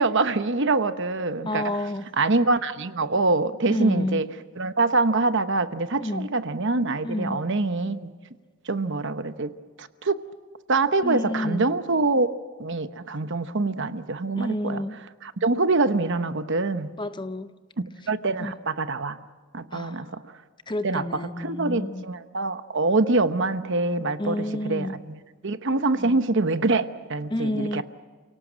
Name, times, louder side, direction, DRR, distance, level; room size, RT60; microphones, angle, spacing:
voice 1, 0.0-1.6 2.2-4.2 4.6-8.1 8.7-9.5 9.8-10.2 10.7-12.3 12.6-14.8 15.2-16.9 17.8-19.2 19.5-20.2 20.8-21.0 21.4-25.2 25.4-27.8, right 3 dB, 55° right, 1.0 m, -25 dB
voice 2, 1.5-2.1 3.7-4.3 6.0-6.3 7.0-7.5 11.0-11.7 14.4-15.0 17.0-17.5 18.0-18.1 18.4-18.6 19.7-20.2 20.7-22.1 24.2-25.0 26.0-26.2 27.3-27.8, left 1 dB, 20° left, 0.6 m, -30 dB
29.5 x 18.0 x 7.5 m
head